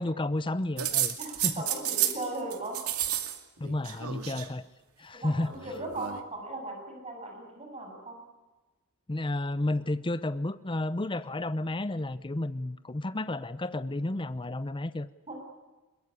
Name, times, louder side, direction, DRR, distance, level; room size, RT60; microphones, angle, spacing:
voice 1, 0.0-1.2 1.4-1.6 3.6-4.6 5.0-5.5 9.1-15.1, left 2 dB, 25° left, 14 dB, 0.7 m, -31 dB
sound 1, 0.8-2.3 2.5-3.4 3.6-4.5 5.5-6.2, right 11 dB, 85° right, 2.5 m, -31 dB
voice 2, 1.2-2.8 5.1-8.2 15.3-15.4, right 2 dB, 30° right, 2 dB, 7.8 m, -38 dB
22.5 x 21.0 x 9.9 m, 1.2 s
head